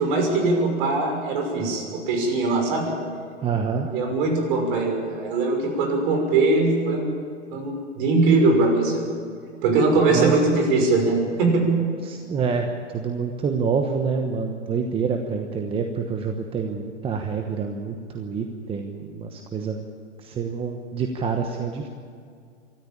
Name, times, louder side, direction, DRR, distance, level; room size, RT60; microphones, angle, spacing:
voice 1, 0.0-2.9 3.9-7.1 7.5-9.2 9.6-11.7, right 3 dB, 45° right, 2 dB, 6.1 m, -21 dB
voice 2, 3.4-3.9 10.1-10.4 12.0-12.7 12.9-19.8 20.2-21.9, right 5 dB, 15° right, 4 dB, 1.1 m, -27 dB
24.0 x 13.5 x 8.8 m, 2.3 s
hypercardioid pair, 125°, 36 cm